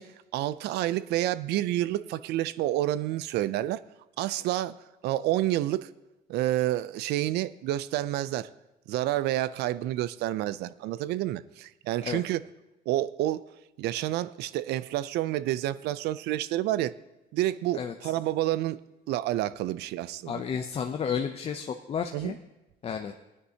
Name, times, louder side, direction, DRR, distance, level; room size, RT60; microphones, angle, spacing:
voice 1, 0.0-3.8 4.2-4.8 5.0-5.9 6.3-8.5 8.9-12.4 12.9-13.4 13.8-17.0 17.3-18.8 19.1-20.4 22.1-22.4, right 14 dB, 80° right, 16 dB, 0.4 m, -29 dB
voice 2, 20.3-22.3 22.8-23.1, left 7 dB, 35° left, 5 dB, 0.6 m, -32 dB
17.5 x 9.6 x 2.8 m, 0.99 s
cardioid pair, 110°, 17 cm